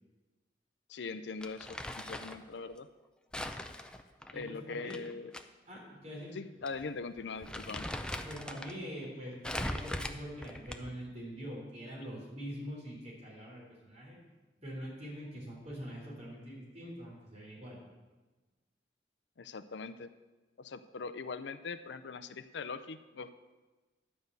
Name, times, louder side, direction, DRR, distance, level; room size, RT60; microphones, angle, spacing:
voice 1, 0.9-2.9 4.3-5.3 6.3-7.9 19.4-20.1 20.6-23.3, left 4 dB, 70° left, 12 dB, 0.5 m, -41 dB
Crumpling crinkling, 1.4-2.4 3.3-5.4 5.8-5.9 6.7-6.8 7.2-8.7 9.4-11.0, left 1 dB, 5° left, 0.4 m, -40 dB
voice 2, 4.3-5.1 5.7-6.4 8.1-14.2 14.6-17.8, equal, 35° right, -3 dB, 3.7 m, -44 dB
11.0 x 5.4 x 8.0 m, 1.2 s
head